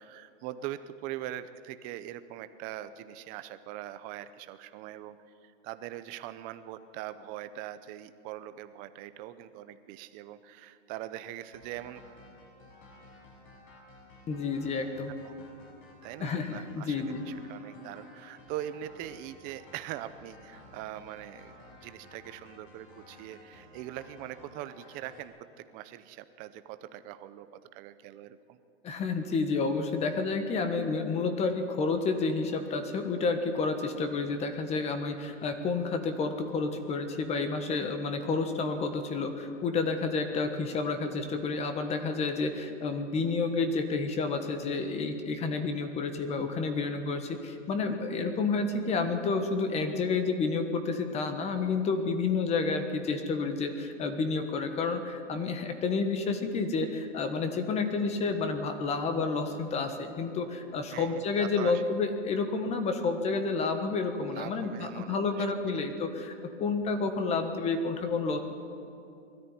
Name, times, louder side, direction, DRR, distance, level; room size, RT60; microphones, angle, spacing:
voice 1, 0.0-5.2 5.4-12.0 15.2-15.5 16.0-28.6 60.9-61.8 64.3-65.8, right 12 dB, 25° right, 12 dB, 0.6 m, -42 dB
sound 1, 11.5-25.2, left 1 dB, 45° left, 6.0 m, -54 dB
voice 2, 14.3-15.1 16.2-17.2 28.8-68.4, left 4 dB, 15° left, 7 dB, 1.4 m, -30 dB
20.5 x 13.5 x 10.0 m, 2.6 s
hypercardioid pair, 150°, 37 cm